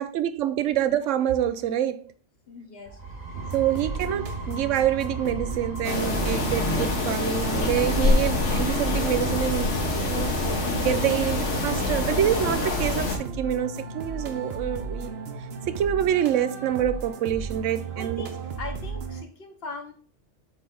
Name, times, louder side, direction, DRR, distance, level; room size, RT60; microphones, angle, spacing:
voice 1, 0.0-2.1 3.5-9.8 10.0-10.3 10.8-15.1 15.7-18.2, right 10 dB, 90° right, 1.0 m, -26 dB
voice 2, 2.5-3.0 18.0-19.9, left 3 dB, 55° left, 1.3 m, -39 dB
sound 1, 2.9-10.5, right 3 dB, 35° right, 1.2 m, -38 dB
sound 2, 3.3-19.2, right 4 dB, 60° right, 1.0 m, -35 dB
sound 3, 5.8-13.2, left 2 dB, 75° left, 1.6 m, -25 dB
7.8 x 3.3 x 3.8 m
omnidirectional pair, 1.2 m